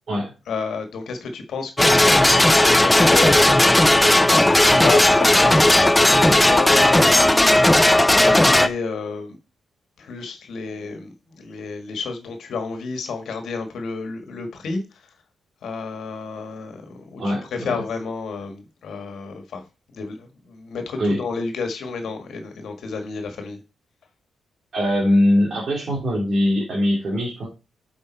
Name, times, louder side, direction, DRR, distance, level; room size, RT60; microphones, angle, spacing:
voice 1, 0.5-3.9 4.3-9.4 10.0-15.1 15.6-23.6, left 4 dB, 70° left, 1.6 m, -31 dB
sound 1, 1.8-8.7, left 1 dB, 10° left, 0.6 m, -15 dB
voice 2, 17.2-17.8 21.0-21.2 24.7-27.5, left 1 dB, 50° right, 2.7 m, -21 dB
8.5 x 5.4 x 4.4 m
cardioid pair, 115°, 0 cm